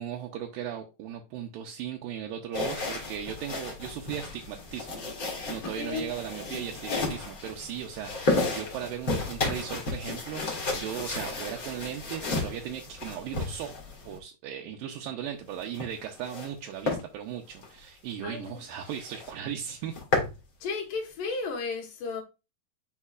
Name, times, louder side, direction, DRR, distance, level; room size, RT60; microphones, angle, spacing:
voice 1, 0.0-13.7 14.1-19.9, right 9 dB, 80° right, 2.4 m, -37 dB
sound 1, 2.5-14.2 15.5-16.5 16.8-17.0 17.5-17.7 18.1-18.2 18.5-18.6 18.9-19.3 19.7-20.4, left 3 dB, 35° left, 1.5 m, -33 dB
voice 2, 18.2-18.6 20.6-22.2, left 4 dB, 70° left, 3.1 m, -33 dB
9.9 x 3.9 x 2.4 m
omnidirectional pair, 4.0 m